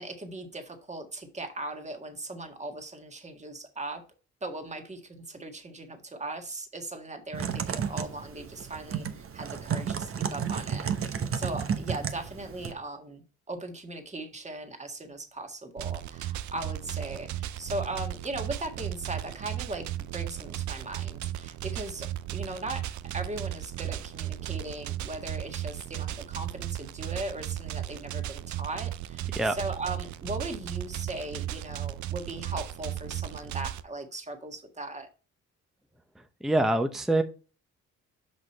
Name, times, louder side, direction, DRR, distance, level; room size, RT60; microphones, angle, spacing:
voice 1, 0.0-4.0 4.4-19.8 20.1-22.1 22.3-29.3 29.6-35.1, right 2 dB, 25° right, 1.7 m, -38 dB
Typing, 7.3-12.7, right 7 dB, 45° right, 1.0 m, -32 dB
sound 1, 15.8-33.8, right 13 dB, 70° right, 0.6 m, -35 dB
voice 2, 36.2-37.2, right 2 dB, ahead, 0.7 m, -25 dB
6.3 x 5.2 x 4.3 m
cardioid pair, 90°, 30 cm